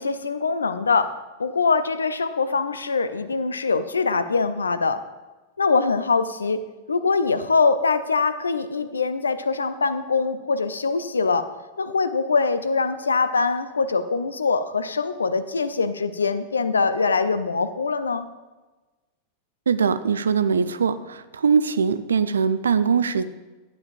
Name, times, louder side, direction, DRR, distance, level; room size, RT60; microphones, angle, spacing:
voice 1, 0.0-5.0 5.6-6.6 6.9-11.5 11.8-18.3, left 4 dB, 75° left, 13 dB, 0.4 m, -23 dB
voice 2, 19.7-23.2, right 6 dB, 70° right, 14 dB, 0.4 m, -21 dB
11.5 x 8.6 x 2.5 m, 1.2 s
figure-of-eight pair, 90°, 0 cm